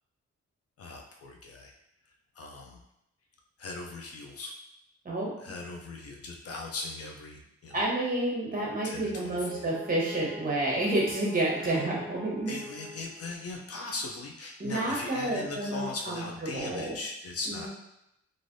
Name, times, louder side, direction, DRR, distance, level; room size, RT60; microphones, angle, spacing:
voice 1, 0.8-1.7 2.3-2.8 3.6-4.5 5.4-7.8 8.8-9.6 11.6-11.9 12.5-17.7, left 3 dB, 55° left, 1 dB, 0.5 m, -39 dB
voice 2, 7.7-12.5 14.6-16.2 16.5-16.9 17.5-17.7, right 1 dB, 30° right, -4 dB, 0.9 m, -29 dB
Brass instrument, 8.5-13.5, left 2 dB, 5° right, 0.8 m, -46 dB
3.2 x 2.5 x 2.6 m, 0.82 s
wide cardioid pair, 125°, 29 cm